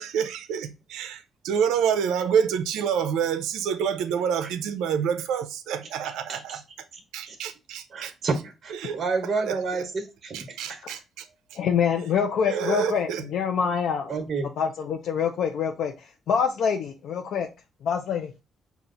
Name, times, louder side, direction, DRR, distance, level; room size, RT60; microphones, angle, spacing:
voice 1, 0.0-6.6 7.1-8.1 8.7-9.0 9.4-9.5 10.3-11.6 12.4-13.2, right 7 dB, 90° right, 0.5 m, -28 dB
voice 2, 6.3-6.6 7.2-7.4 7.9-10.8 12.5-12.6 14.1-14.5, right 4 dB, 45° right, 1.1 m, -30 dB
voice 3, 11.5-14.2 14.6-17.5 17.8-18.3, left 7 dB, 75° left, 0.5 m, -26 dB
5.7 x 2.4 x 3.8 m
cardioid pair, 90°, 0 cm